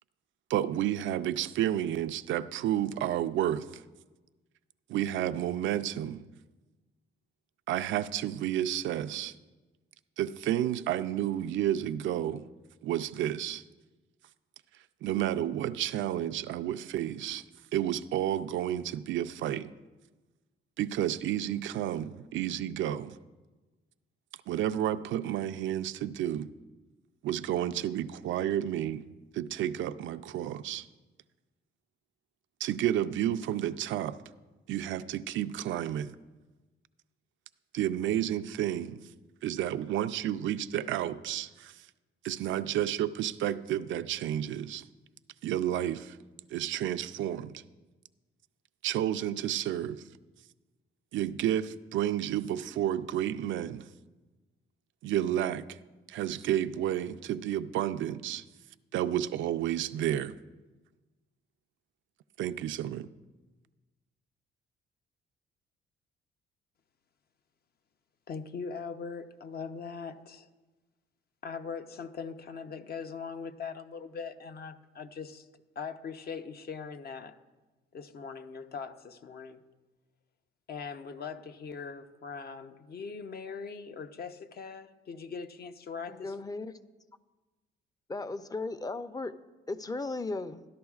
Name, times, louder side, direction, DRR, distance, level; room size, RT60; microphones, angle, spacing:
voice 1, 0.5-3.8 4.9-6.2 7.7-9.4 10.2-12.5 12.8-13.6 15.0-17.4 17.7-19.7 20.8-23.2 24.5-26.5 27.2-29.0 29.3-30.9 32.6-34.2 34.7-36.2 37.7-39.0 39.4-41.9 42.2-44.8 45.4-46.2 46.5-47.6 48.8-50.0 51.1-53.9 55.0-55.8 56.1-58.4 58.9-60.3 62.4-63.1, right 11 dB, 75° right, 12 dB, 0.4 m, -31 dB
voice 2, 68.3-70.5 71.4-75.5 75.8-77.4 77.9-79.6 80.7-86.4, left 5 dB, 50° left, 8 dB, 0.7 m, -41 dB
voice 3, 86.1-86.7 88.1-89.3 89.7-90.7, left 3 dB, 20° left, 11 dB, 0.5 m, -36 dB
14.0 x 11.0 x 2.4 m, 1.2 s
cardioid pair, 90°, 20 cm